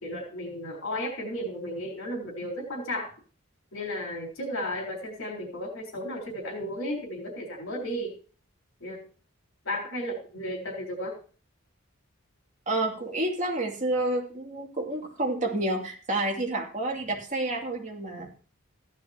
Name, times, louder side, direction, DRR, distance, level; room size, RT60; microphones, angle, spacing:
voice 1, 0.0-3.1 3.7-8.1 8.8-9.0 9.6-11.1, equal, 80° left, 0 dB, 4.2 m, -34 dB
voice 2, 12.7-18.3, right 2 dB, 40° right, 0 dB, 2.6 m, -29 dB
15.0 x 11.5 x 2.9 m, 0.39 s
head